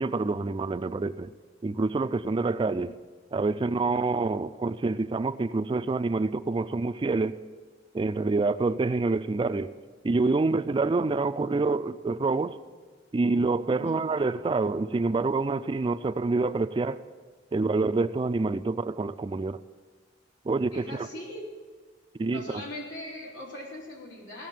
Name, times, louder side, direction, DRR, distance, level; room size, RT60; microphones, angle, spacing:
voice 1, 0.0-1.3 1.6-3.0 3.3-7.4 7.9-9.7 10.0-12.6 13.1-17.0 17.5-19.6 20.5-21.1 22.2-22.6, right 3 dB, 25° right, 0.3 m, -27 dB
voice 2, 13.7-14.0 20.7-21.6 22.3-24.5, left 1 dB, 85° left, 3.8 m, -40 dB
16.5 x 6.6 x 9.1 m
head